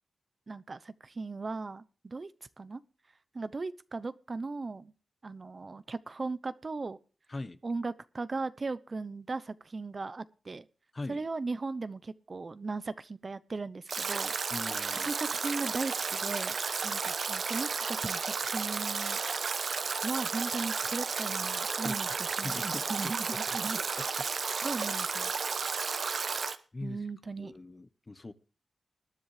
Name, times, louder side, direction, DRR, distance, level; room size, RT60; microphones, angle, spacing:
voice 1, 0.5-2.3 2.6-2.8 3.3-4.9 5.2-7.0 7.6-10.6 11.1-14.6 14.9-16.6 16.8-19.2 20.0-24.3 24.6-25.3 26.8-27.5, right 3 dB, 45° right, 0.7 m, -37 dB
Stream / Drip / Trickle dribble, 13.9-26.5, right 5 dB, 70° right, 1.0 m, -33 dB
voice 2, 14.5-15.1 21.8-23.6 24.0-24.1 25.1-25.2 26.7-27.0 27.4-28.3, left 2 dB, 35° left, 1.1 m, -42 dB
21.0 x 10.0 x 3.3 m
cardioid pair, 55°, 0 cm